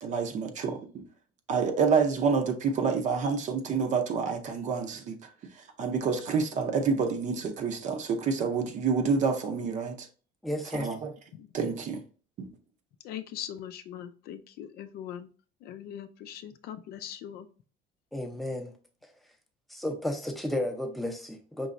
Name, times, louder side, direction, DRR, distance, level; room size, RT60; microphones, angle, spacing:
voice 1, 0.0-1.0 1.5-5.2 5.8-10.1 10.7-11.1 11.5-12.0 12.4-12.5, right 5 dB, 40° right, 0.6 m, -28 dB
voice 2, 10.4-10.9 18.1-18.7 19.7-21.7, left 1 dB, ahead, 0.6 m, -32 dB
voice 3, 13.0-15.3 15.6-17.5, left 10 dB, 55° left, 0.4 m, -41 dB
5.3 x 3.0 x 2.5 m
cardioid pair, 150°, 19 cm